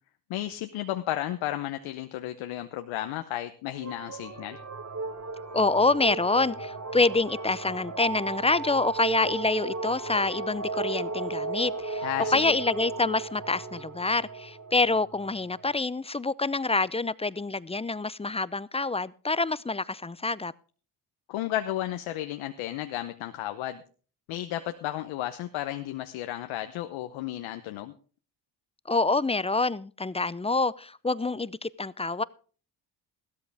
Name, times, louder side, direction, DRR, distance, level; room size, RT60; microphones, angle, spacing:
voice 1, 0.3-4.6 12.0-12.6 21.3-23.8 24.3-27.9, left 13 dB, 80° left, 1.0 m, -33 dB
sound 1, 3.8-15.6, right 3 dB, 35° right, 3.6 m, -35 dB
voice 2, 5.5-20.5 28.9-32.2, left 3 dB, 15° left, 0.6 m, -27 dB
15.5 x 13.0 x 3.4 m
supercardioid pair, 55°, 46 cm